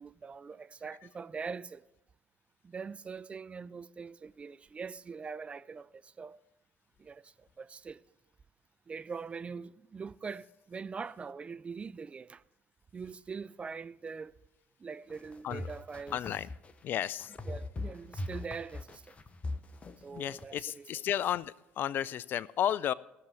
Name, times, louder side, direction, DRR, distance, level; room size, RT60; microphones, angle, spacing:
voice 1, 0.0-1.8 2.6-6.4 7.0-8.0 8.9-12.4 12.9-14.3 14.8-16.2 17.5-19.1 20.0-20.9, right 5 dB, 25° right, 0.4 m, -43 dB
sound 1, 15.1-20.5, left 2 dB, 25° left, 0.8 m, -40 dB
voice 2, 16.1-16.5 16.8-17.3 20.2-22.9, left 10 dB, 45° left, 0.3 m, -33 dB
16.5 x 6.8 x 6.1 m
figure-of-eight pair, 60°, 5 cm